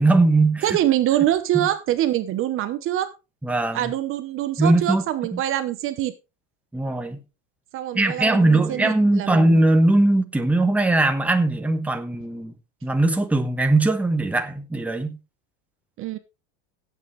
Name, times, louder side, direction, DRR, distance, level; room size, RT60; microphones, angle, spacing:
voice 1, 0.0-0.6 1.5-1.7 3.4-3.9 4.6-5.0 6.7-7.2 7.9-12.5 12.8-15.2, right 2 dB, 5° right, 1.4 m, -20 dB
voice 2, 0.6-3.1 3.7-6.1 7.7-9.6 16.0-16.2, right 13 dB, 40° right, 1.0 m, -24 dB
17.0 x 8.4 x 3.3 m
supercardioid pair, 140°, 33 cm